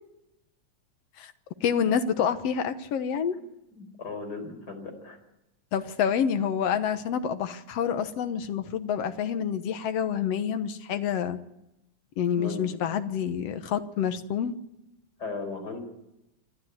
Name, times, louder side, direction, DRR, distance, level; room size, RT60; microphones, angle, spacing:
voice 1, 1.6-3.4 5.7-11.4 12.2-14.5, left 8 dB, 65° left, 10 dB, 2.1 m, -27 dB
voice 2, 3.7-5.2 12.3-12.8 15.2-15.8, left 3 dB, 30° left, 4 dB, 4.9 m, -37 dB
27.5 x 12.5 x 9.4 m, 0.92 s
omnidirectional pair, 3.4 m